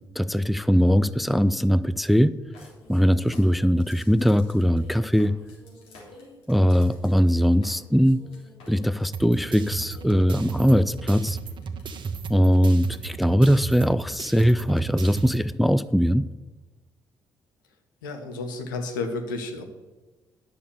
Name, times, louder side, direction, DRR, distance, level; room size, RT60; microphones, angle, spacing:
voice 1, 0.2-2.3 2.9-5.3 6.5-8.2 8.7-11.4 12.3-16.3, equal, ahead, 15 dB, 0.5 m, -21 dB
sound 1, 2.5-10.5 11.1-11.2 11.4-11.8 12.5-12.6, left 2 dB, 65° left, 3.4 m, -50 dB
sound 2, 9.1-15.4, right 5 dB, 50° right, 1.1 m, -34 dB
voice 2, 18.0-19.6, left 3 dB, 80° left, 4 dB, 1.2 m, -31 dB
10.5 x 6.7 x 7.0 m, 1.2 s
figure-of-eight pair, 45°, 10 cm